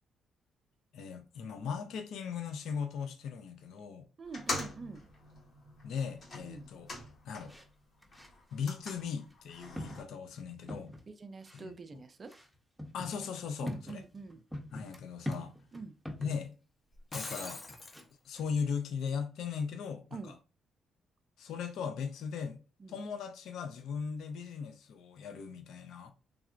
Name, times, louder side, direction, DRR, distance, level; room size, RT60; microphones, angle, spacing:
voice 1, 0.9-4.1 5.8-6.9 7.2-7.5 8.5-10.9 11.5-12.0 12.9-14.0 14.7-15.5 16.2-16.5 17.1-17.6 18.2-20.4 21.4-22.6 22.9-26.1, left 6 dB, 75° left, 0.6 m, -38 dB
sound 1, 4.2-7.7 8.0-10.0, left 2 dB, 55° left, 1.7 m, -43 dB
voice 2, 4.2-5.0 6.4-6.7 11.1-12.3 13.6-14.4 15.7-16.0 20.1-20.3 22.8-22.9, right 4 dB, 35° right, 0.4 m, -45 dB
sound 2, 7.5-7.7 8.0-8.5 9.3-9.4 9.8-11.1 11.4-11.6 12.3-16.4 17.2-18.1 18.4-18.5, left 1 dB, ahead, 0.8 m, -43 dB
Shatter, 16.9-18.0, left 3 dB, 35° left, 0.7 m, -42 dB
3.5 x 3.2 x 2.5 m
cardioid pair, 90°, 0 cm